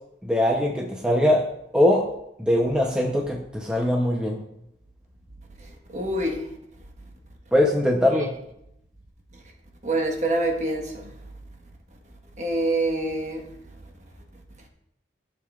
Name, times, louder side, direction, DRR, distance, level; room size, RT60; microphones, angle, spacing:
voice 1, 0.2-1.4 1.7-2.1 2.4-4.4 7.5-8.3, left 1 dB, 5° right, 0.7 m, -21 dB
voice 2, 5.9-6.4 9.8-10.9 12.4-13.4, right 2 dB, 40° right, 1.4 m, -25 dB
14.5 x 6.7 x 2.4 m
head